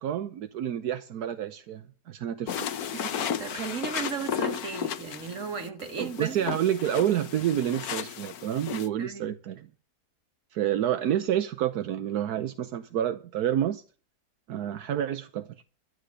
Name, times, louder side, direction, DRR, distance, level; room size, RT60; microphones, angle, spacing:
voice 1, 0.0-2.7 6.0-9.7 10.5-13.8 14.5-15.5, right 11 dB, 75° right, 1.3 m, -29 dB
sound 1, 2.5-8.9, left 8 dB, 70° left, 1.4 m, -34 dB
voice 2, 2.9-6.5 9.0-9.4, right 6 dB, 50° right, 2.3 m, -35 dB
12.5 x 8.4 x 7.8 m
omnidirectional pair, 1.7 m